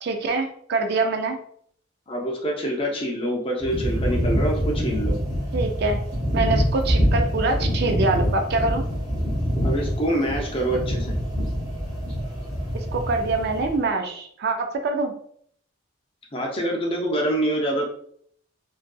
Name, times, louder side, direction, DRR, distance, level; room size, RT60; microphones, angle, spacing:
voice 1, 0.0-1.4 5.5-6.0 6.3-8.8 12.7-15.1, right 3 dB, 50° right, 5 dB, 0.3 m, -24 dB
voice 2, 2.1-5.2 9.6-11.1 16.3-17.9, right 1 dB, 25° left, 0 dB, 0.5 m, -25 dB
sound 1, 3.6-13.8, equal, 20° right, 0.7 m, -25 dB
2.5 x 2.4 x 2.2 m, 0.63 s
head